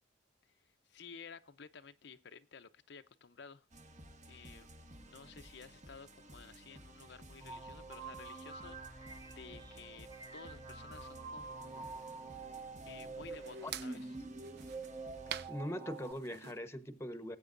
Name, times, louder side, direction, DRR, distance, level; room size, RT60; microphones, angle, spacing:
voice 1, 0.9-3.7 4.3-12.0 12.4-14.2, left 5 dB, 65° left, 0.7 m, -54 dB
sound 1, 3.7-15.5, right 1 dB, 40° right, 1.5 m, -55 dB
sound 2, 7.4-16.1, right 3 dB, 20° right, 1.2 m, -47 dB
sound 3, 11.4-16.6, right 9 dB, 60° right, 0.6 m, -50 dB
voice 2, 15.3-17.4, equal, 15° left, 1.0 m, -42 dB
20.0 x 8.5 x 2.6 m
head